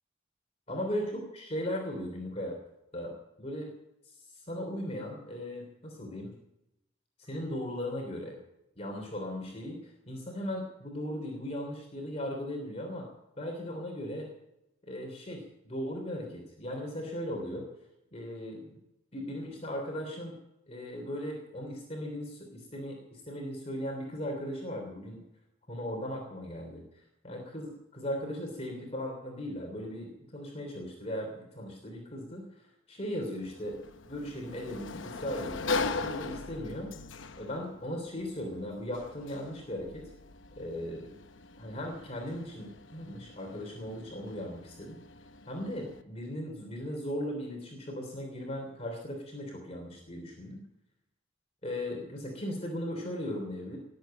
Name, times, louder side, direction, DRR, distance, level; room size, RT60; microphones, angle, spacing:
voice 1, 0.7-2.6 2.9-3.7 4.5-6.3 7.2-8.3 8.8-13.1 13.4-14.3 14.8-17.6 18.1-18.7 19.1-20.3 20.7-25.2 25.7-26.8 27.2-32.5 32.9-33.8 34.1-36.9 37.4-40.0 40.6-41.1 41.6-45.0 45.5-50.6 51.6-53.8, equal, 35° left, 1 dB, 3.3 m, -37 dB
Sliding door, 33.4-46.0, left 3 dB, 85° left, 0.9 m, -40 dB
19.5 x 8.2 x 8.8 m, 0.86 s
head